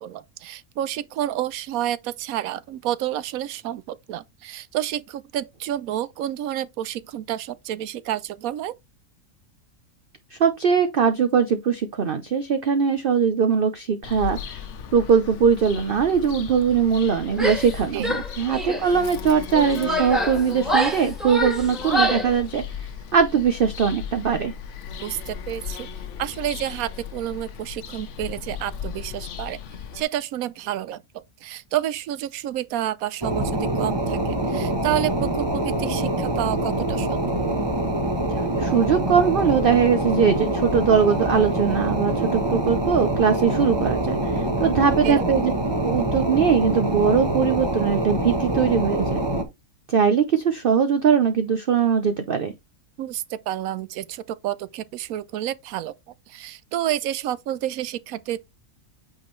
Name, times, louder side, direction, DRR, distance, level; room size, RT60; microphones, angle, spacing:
voice 1, 0.0-8.7 17.9-18.1 25.0-25.9 26.2-29.6 29.9-31.0 31.4-37.3 45.0-45.3 53.0-55.9 56.3-58.4, right 12 dB, 80° right, 1.0 m, -29 dB
voice 2, 10.3-14.6 14.9-24.5 38.6-45.5 45.8-49.2 49.9-52.5, right 6 dB, 50° right, 0.7 m, -21 dB
Bird vocalization bird call bird song, 14.0-30.0, left 8 dB, 60° left, 1.0 m, -36 dB
Female speech woman speaking / Yell, 17.3-17.8 18.0-18.9 19.5-22.4, right 1 dB, ahead, 1.6 m, -25 dB
sound 1, 33.2-49.4, right 1 dB, 20° right, 1.0 m, -25 dB
8.6 x 4.2 x 3.1 m
omnidirectional pair, 1.5 m